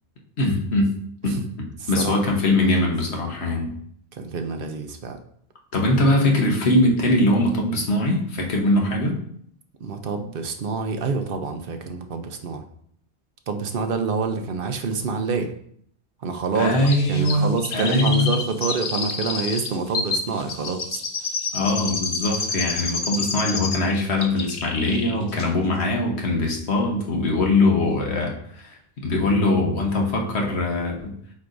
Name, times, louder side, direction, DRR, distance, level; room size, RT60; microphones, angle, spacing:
voice 1, 0.4-1.0 1.2-3.7 5.7-9.1 16.5-18.3 21.5-28.7 29.0-31.1, left 2 dB, 75° left, 0 dB, 1.4 m, -22 dB
voice 2, 1.8-2.2 2.5-2.9 4.2-5.2 9.8-12.6 13.5-15.5 16.2-16.7 17.1-21.0, right 4 dB, 60° right, 6 dB, 0.9 m, -27 dB
Chirp tweet, 16.9-23.9 24.2-25.1 25.4-25.5, left 4 dB, 50° left, 0.8 m, -29 dB
8.3 x 4.6 x 2.6 m, 0.66 s
omnidirectional pair, 1.1 m